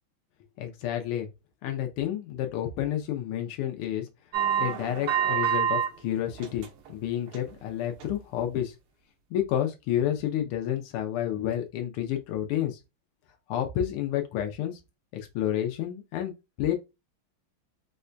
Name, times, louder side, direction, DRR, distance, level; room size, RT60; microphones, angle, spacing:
voice 1, 0.6-1.3 1.6-4.1 4.6-8.7 9.3-12.8 13.5-14.7 15.1-16.3 16.6-16.7, left 11 dB, 85° left, 1.6 m, -30 dB
sound 1, 4.3-5.9 6.3-6.9 7.3-7.5 8.0-8.1, right 9 dB, 85° right, 1.6 m, -27 dB
4.6 x 2.2 x 2.5 m
omnidirectional pair, 2.4 m